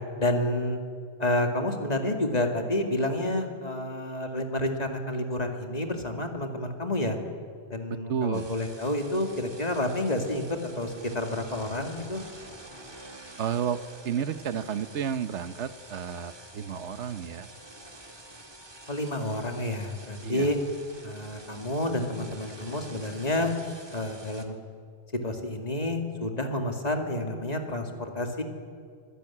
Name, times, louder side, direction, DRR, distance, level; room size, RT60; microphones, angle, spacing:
voice 1, 0.2-0.8 1.2-7.2 7.7-12.2 18.9-20.6 21.0-23.6 23.9-24.5 25.2-28.4, left 1 dB, 35° left, 4 dB, 2.5 m, -29 dB
voice 2, 7.9-8.5 13.4-17.5 20.2-20.5, right 8 dB, 90° right, 13 dB, 1.2 m, -31 dB
sound 1, 8.3-24.4, right 1 dB, 20° right, 2.1 m, -48 dB
25.0 x 15.5 x 9.9 m, 2.2 s
omnidirectional pair, 1.1 m